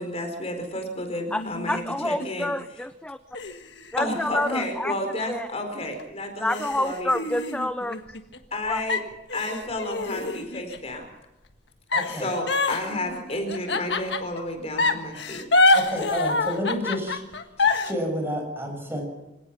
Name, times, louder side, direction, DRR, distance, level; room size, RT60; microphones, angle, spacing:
voice 1, 0.0-2.5 4.0-7.1 8.5-9.0 9.3-11.1 12.1-15.4 17.6-17.7, left 1 dB, 35° left, 5 dB, 4.3 m, -31 dB
sound 1, 1.3-2.6 3.3-5.5 6.0-6.1 6.5-8.6 8.9-10.9 11.9-14.4 14.8-17.9, left 2 dB, 70° left, 1.6 m, -26 dB
voice 2, 1.3-3.2 3.9-4.9 5.3-5.5 6.4-8.2 8.7-8.8, left 1 dB, 5° left, 11 dB, 0.6 m, -28 dB
voice 3, 11.9-12.3 15.7-17.2 17.7-19.0, equal, 15° right, 2 dB, 6.7 m, -30 dB
26.0 x 17.0 x 6.1 m, 0.95 s
head